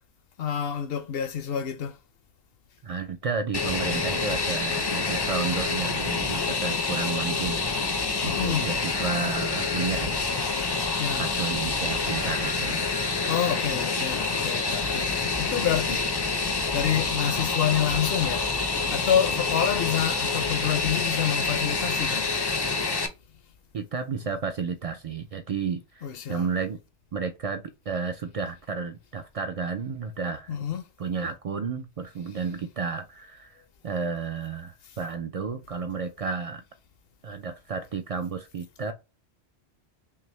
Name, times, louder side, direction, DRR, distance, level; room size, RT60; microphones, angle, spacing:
voice 1, 0.4-2.0 8.2-8.7 10.6-10.7 11.0-11.2 13.3-16.1 16.7-18.5 18.9-22.3 26.0-26.5 30.5-30.8, left 9 dB, 65° left, 0.8 m, -28 dB
voice 2, 2.8-7.7 8.2-10.3 10.6-12.9 23.7-26.8 27.1-30.6 31.0-33.6 33.8-36.6 37.2-38.9, right 5 dB, 70° right, 0.3 m, -32 dB
Fixed-wing aircraft airplane, 3.5-23.1, left 4 dB, 35° left, 0.4 m, -27 dB
5.6 x 2.0 x 3.1 m
omnidirectional pair, 1.1 m